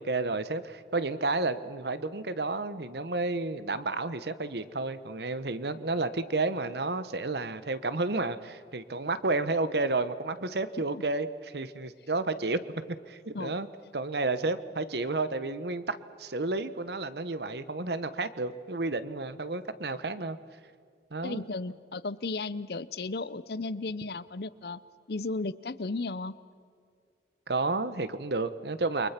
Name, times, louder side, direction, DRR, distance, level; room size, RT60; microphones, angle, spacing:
voice 1, 0.0-12.6 13.1-13.7 13.9-20.4 21.1-21.5 27.5-29.1, right 3 dB, 70° right, 13 dB, 1.1 m, -31 dB
voice 2, 21.2-24.8 25.1-26.3, left 3 dB, 65° left, 17 dB, 0.7 m, -34 dB
29.5 x 23.5 x 5.9 m, 2.2 s
head